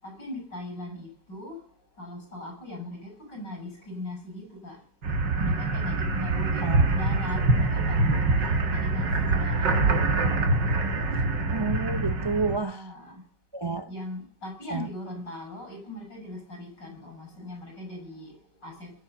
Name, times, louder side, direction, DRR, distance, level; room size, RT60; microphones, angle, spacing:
voice 1, 0.0-1.6 2.0-4.8 5.4-9.8 12.3-13.2 13.9-18.9, left 1 dB, 80° left, 8.3 m, -40 dB
sound 1, 5.0-12.6, right 3 dB, 85° right, 2.5 m, -24 dB
voice 2, 6.6-6.9 11.5-12.9 13.5-13.9 14.7-14.9, right 3 dB, 35° right, 0.4 m, -29 dB
21.5 x 7.7 x 6.8 m
omnidirectional pair, 1.9 m